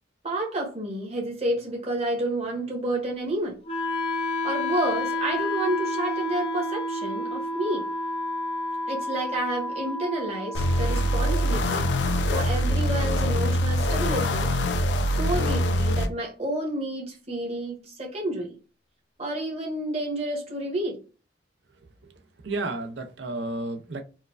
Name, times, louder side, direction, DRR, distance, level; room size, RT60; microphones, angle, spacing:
voice 1, 0.2-3.6 4.4-7.9 8.9-14.5 15.1-18.6 19.2-21.0, right 1 dB, 35° right, 1.2 m, -30 dB
Wind instrument woodwind instrument, 3.6-13.7, left 1 dB, 35° left, 0.6 m, -31 dB
sound 1, 10.5-16.1, equal, 75° left, 0.5 m, -24 dB
voice 2, 22.4-24.0, right 2 dB, 80° right, 0.6 m, -32 dB
4.5 x 2.3 x 2.4 m
head